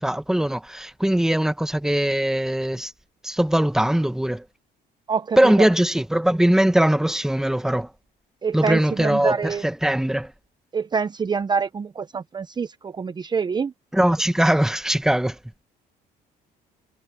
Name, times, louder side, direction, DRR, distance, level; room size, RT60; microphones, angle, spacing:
voice 1, 0.0-2.9 3.2-4.4 5.4-7.9 8.5-10.3 13.9-15.4, right 1 dB, 5° right, 1.2 m, -21 dB
voice 2, 5.1-5.7 8.4-9.6 10.7-13.7, right 5 dB, 25° right, 0.7 m, -26 dB
cardioid pair, 110°, 17 cm